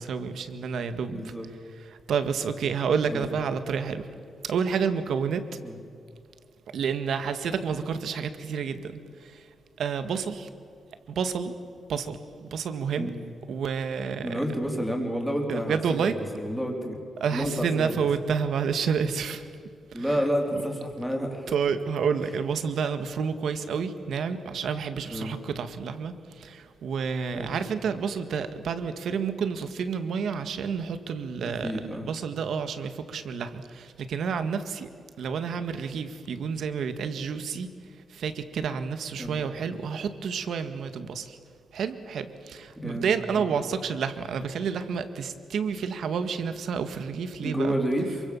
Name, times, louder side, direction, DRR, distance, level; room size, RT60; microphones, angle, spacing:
voice 1, 0.0-1.3 1.8-4.0 4.4-5.4 6.7-9.4 9.8-10.5 11.2-11.5 11.9-13.1 13.5-14.4 15.5-16.2 17.2-19.5 19.9-20.2 21.5-31.7 32.0-34.9 35.2-37.7 38.1-41.4 41.7-47.8, right 6 dB, 70° right, 10 dB, 1.8 m, -29 dB
voice 2, 1.1-1.4 3.1-3.3 5.6-5.8 12.9-13.2 14.2-17.0 17.3-18.0 19.9-21.5 25.1-25.3 27.3-27.5 31.4-32.1 39.2-39.4 42.8-43.1 43.4-43.5 47.4-48.1, equal, ahead, 1 dB, 4.2 m, -30 dB
27.5 x 24.0 x 7.3 m, 2.4 s
wide cardioid pair, 165°, 0 cm